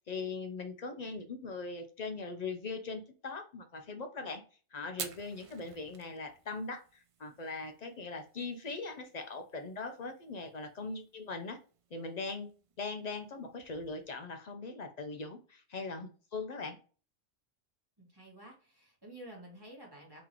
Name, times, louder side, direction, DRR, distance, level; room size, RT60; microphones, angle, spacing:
voice 1, 0.1-4.4 4.7-11.6 11.9-12.5 12.8-16.8, left 3 dB, 55° left, 6 dB, 0.5 m, -40 dB
Fire, 4.9-14.1, right 6 dB, 60° right, 0.3 m, -52 dB
voice 2, 18.0-20.2, right 1 dB, 20° right, -3 dB, 1.6 m, -51 dB
3.7 x 3.0 x 2.9 m, 0.38 s
omnidirectional pair, 1.2 m